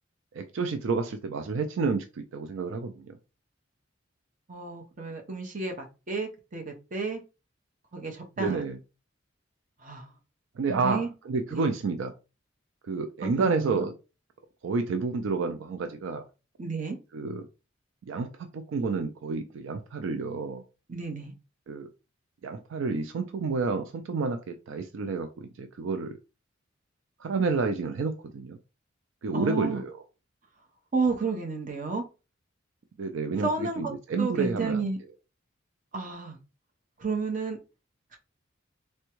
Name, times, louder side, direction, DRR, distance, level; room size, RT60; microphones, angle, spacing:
voice 1, 0.3-3.2 8.4-8.8 10.6-12.1 12.9-13.9 14.6-16.2 17.1-17.5 18.1-20.6 21.7-21.9 22.4-26.1 27.2-28.6 29.2-29.9 33.0-34.8, right 4 dB, 75° right, 0.4 m, -30 dB
voice 2, 4.5-7.2 7.9-8.6 9.8-10.1 10.7-11.1 11.5-11.7 13.4-13.8 16.6-17.0 20.9-21.3 29.3-29.8 30.9-32.0 33.4-33.9 34.2-35.0 35.9-36.4 37.0-37.6, right 4 dB, 40° right, 0.8 m, -31 dB
3.4 x 2.2 x 3.0 m
head